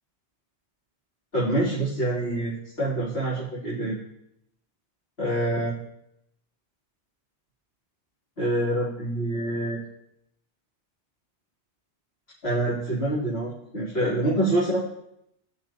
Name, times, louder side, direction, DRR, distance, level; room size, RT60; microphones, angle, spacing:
voice 1, 1.3-4.0 5.2-5.7 8.4-9.8 12.4-14.8, right 1 dB, 65° left, -11 dB, 3.7 m, -26 dB
20.5 x 7.0 x 3.0 m, 0.79 s
omnidirectional pair, 1.1 m